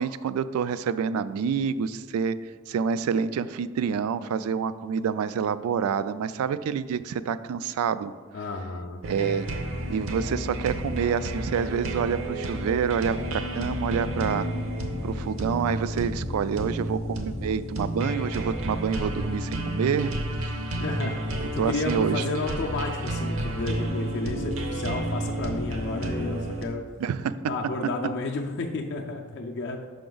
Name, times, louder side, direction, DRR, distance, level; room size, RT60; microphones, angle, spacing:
voice 1, 0.0-2.4 2.7-8.1 9.0-9.5 9.9-14.5 15.0-20.1 21.6-22.2 27.0-27.3, right 7 dB, 85° right, 16 dB, 0.3 m, -27 dB
voice 2, 8.3-9.0 20.8-21.2 21.5-26.8 27.5-29.8, left 3 dB, 55° left, 1 dB, 0.4 m, -32 dB
sound 1, 9.0-26.6, right 1 dB, 65° right, 0.7 m, -31 dB
5.8 x 5.1 x 3.8 m, 1.5 s
head